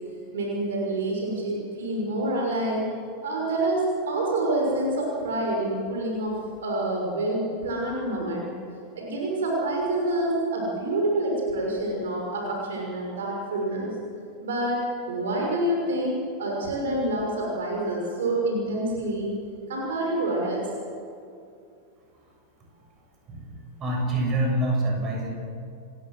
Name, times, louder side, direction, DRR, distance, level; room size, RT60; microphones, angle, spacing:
voice 1, 0.3-2.8 3.2-8.5 8.9-13.9 14.4-16.1 16.4-19.4 19.7-20.7, right 1 dB, 60° right, -1 dB, 6.1 m, -27 dB
voice 2, 23.8-25.3, right 1 dB, 30° right, 0 dB, 7.3 m, -25 dB
29.5 x 15.0 x 7.7 m, 2.5 s
figure-of-eight pair, 90°, 0 cm